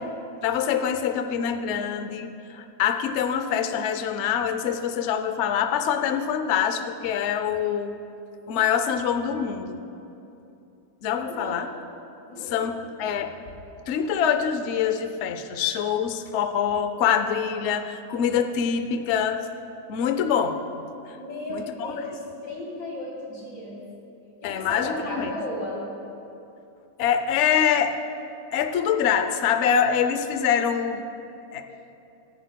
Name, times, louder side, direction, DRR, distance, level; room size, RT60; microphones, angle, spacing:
voice 1, 0.4-7.9 8.5-9.8 11.0-11.7 12.5-13.3 13.9-19.4 19.9-20.6 21.5-21.9 24.4-25.3 27.0-28.0 28.5-31.0 31.5-31.6, left 8 dB, 85° left, 8 dB, 0.6 m, -25 dB
voice 2, 11.3-11.7 12.3-12.7 21.1-23.8 24.4-25.9, left 1 dB, 65° left, -5 dB, 3.7 m, -34 dB
16.0 x 15.5 x 2.2 m, 2.8 s
omnidirectional pair, 2.0 m